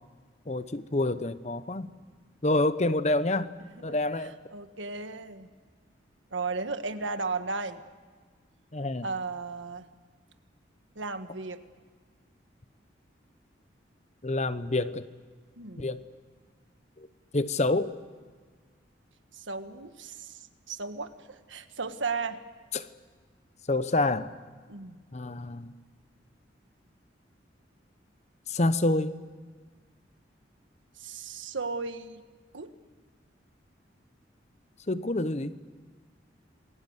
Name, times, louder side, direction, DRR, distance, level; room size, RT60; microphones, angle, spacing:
voice 1, 0.5-1.9 2.4-3.5 3.8-4.4 8.7-9.1 14.2-15.1 15.8-16.0 17.0-17.1 17.3-18.0 22.7-22.9 23.7-24.3 25.1-25.7 28.5-29.1 34.9-35.6, left 2 dB, 35° left, 13 dB, 0.9 m, -27 dB
voice 2, 3.8-5.5 6.3-7.8 9.0-9.9 10.9-11.6 15.6-15.9 19.3-22.4 24.7-24.9 31.0-32.2 32.5-32.7, right 4 dB, 85° right, 9 dB, 1.6 m, -35 dB
27.5 x 21.5 x 8.2 m, 1.5 s
head